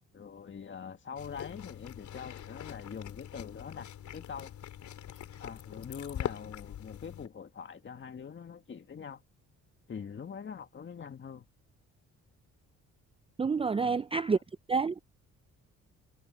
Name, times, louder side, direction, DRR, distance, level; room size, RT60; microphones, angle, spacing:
voice 1, 0.1-4.5 5.4-9.2 9.9-11.4 13.8-14.0, left 6 dB, 40° left, 2.0 m, -44 dB
sound 1, 1.2-7.3, left 10 dB, 70° left, 4.2 m, -43 dB
voice 2, 13.4-14.4 14.7-15.0, right 5 dB, 20° right, 0.5 m, -28 dB
cardioid pair, 90°, 30 cm